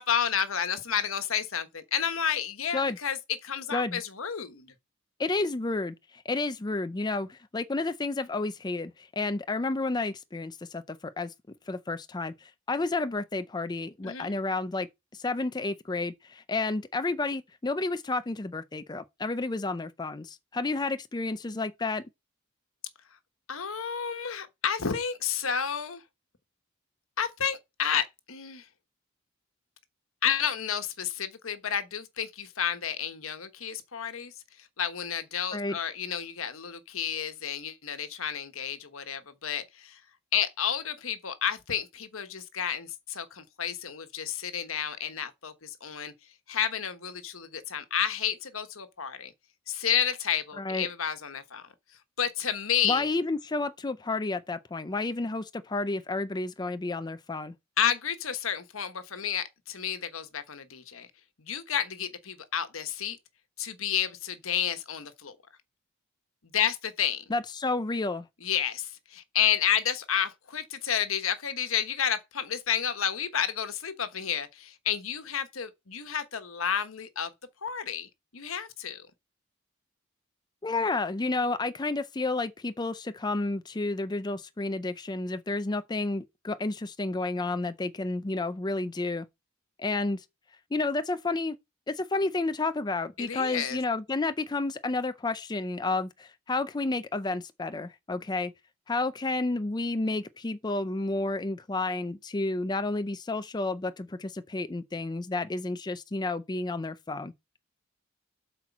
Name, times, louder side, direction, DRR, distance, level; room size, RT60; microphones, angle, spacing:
voice 1, 0.0-4.7 14.0-14.3 23.5-26.0 27.2-28.7 30.2-40.0 40.3-46.1 46.5-49.3 49.7-51.7 52.2-53.1 57.8-61.1 61.4-63.2 63.6-65.4 66.5-67.2 68.4-77.3 77.6-79.1 93.2-93.8, left 8 dB, 80° left, 1.2 m, -31 dB
voice 2, 5.2-11.3 11.7-14.9 15.1-22.0 35.5-35.8 50.6-50.9 52.8-57.5 67.3-68.3 80.6-89.2 89.8-90.2 90.7-91.6 91.9-98.5 98.9-107.3, left 3 dB, 20° left, 0.4 m, -31 dB
8.0 x 4.4 x 5.9 m
head